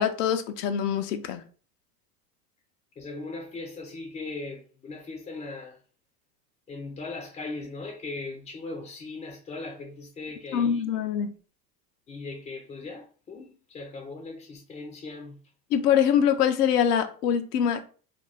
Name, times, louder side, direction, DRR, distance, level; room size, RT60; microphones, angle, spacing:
voice 1, 0.0-1.4 10.5-11.3 15.7-17.9, left 8 dB, 80° left, 0.6 m, -24 dB
voice 2, 3.0-5.8 6.7-10.8 12.1-15.4, left 3 dB, 15° left, 0.4 m, -39 dB
2.5 x 2.2 x 3.2 m
hypercardioid pair, 100°, 47 cm